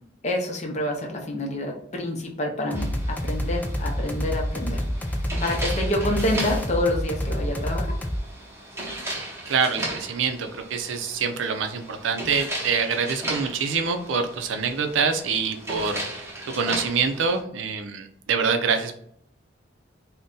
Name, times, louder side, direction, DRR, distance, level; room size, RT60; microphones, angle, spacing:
voice 1, 0.2-7.9, left 1 dB, 40° left, 1 dB, 0.6 m, -28 dB
sound 1, 2.7-8.2, equal, 10° left, 0.3 m, -28 dB
sound 2, 2.7-17.4, right 1 dB, 15° right, 0.8 m, -36 dB
voice 2, 9.5-18.9, right 5 dB, 85° right, 6 dB, 0.5 m, -26 dB
2.6 x 2.2 x 3.6 m, 0.68 s
head